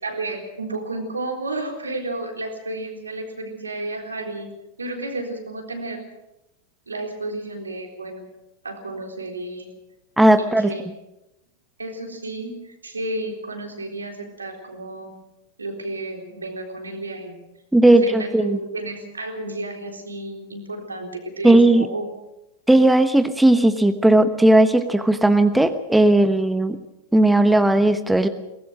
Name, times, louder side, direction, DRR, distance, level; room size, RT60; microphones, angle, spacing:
voice 1, 0.0-4.5 4.8-6.0 6.9-8.2 8.6-9.7 10.4-10.8 11.8-15.1 15.6-17.4 17.8-22.1, right 2 dB, 75° right, 3 dB, 3.8 m, -32 dB
voice 2, 10.2-10.7 17.7-18.6 21.4-21.9 22.7-26.8 27.1-28.3, right 1 dB, 5° right, 9 dB, 1.1 m, -16 dB
22.5 x 19.0 x 6.2 m, 0.95 s
figure-of-eight pair, 90°, 0 cm